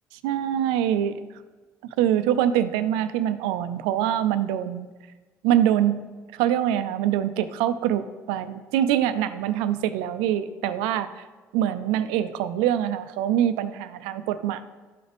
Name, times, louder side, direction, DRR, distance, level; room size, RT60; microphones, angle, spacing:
voice 1, 0.2-1.3 2.0-4.9 5.4-6.0 6.3-11.2 11.5-14.6, right 11 dB, 90° right, 12 dB, 0.4 m, -24 dB
12.0 x 4.1 x 3.4 m, 1.3 s
supercardioid pair, 70°, 8 cm